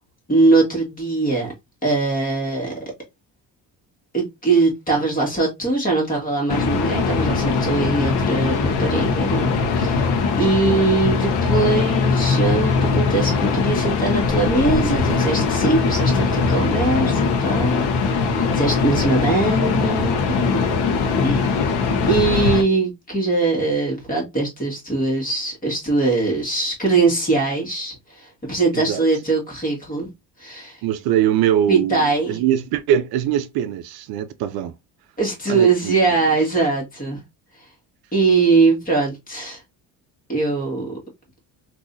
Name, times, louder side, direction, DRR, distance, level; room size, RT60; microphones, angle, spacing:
voice 1, 0.3-1.5 1.8-2.7 4.1-10.1 10.4-20.7 21.2-21.5 22.1-30.1 30.4-30.8 31.7-32.4 35.2-37.2 38.1-39.6 40.3-40.9, right 3 dB, 20° left, 1.7 m, -21 dB
sound 1, 6.5-22.6, left 4 dB, 90° left, 0.9 m, -21 dB
voice 2, 28.7-29.0 30.8-34.7 35.5-36.0, right 10 dB, 75° right, 0.5 m, -22 dB
3.8 x 2.7 x 2.5 m
cardioid pair, 120°, 38 cm